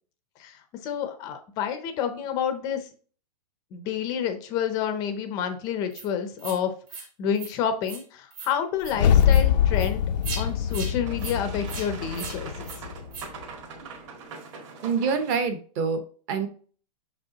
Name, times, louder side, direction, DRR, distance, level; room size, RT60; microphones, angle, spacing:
voice 1, 0.4-2.9 3.7-12.7, left 8 dB, 20° left, 8 dB, 0.5 m, -29 dB
sound 1, 5.9-6.1 6.4-6.6 6.9-7.1 7.3-7.5 7.8-8.0 8.3-8.5 8.8-8.9 9.3-9.4 9.7-9.9 10.2-10.4 10.7-10.9 11.2-11.4 11.7-11.9 12.1-12.4 12.6-12.8 13.1-13.3, right 5 dB, 65° right, 2.6 m, -38 dB
sound 2, 8.8-13.2, left 9 dB, 90° left, 0.5 m, -23 dB
Boat Water vehicle, 10.4-15.4, right 4 dB, 45° right, 1.9 m, -42 dB
voice 2, 14.8-16.5, right 5 dB, 25° right, 8 dB, 0.8 m, -26 dB
6.5 x 5.3 x 2.8 m, 0.41 s
supercardioid pair, 170°, 21 cm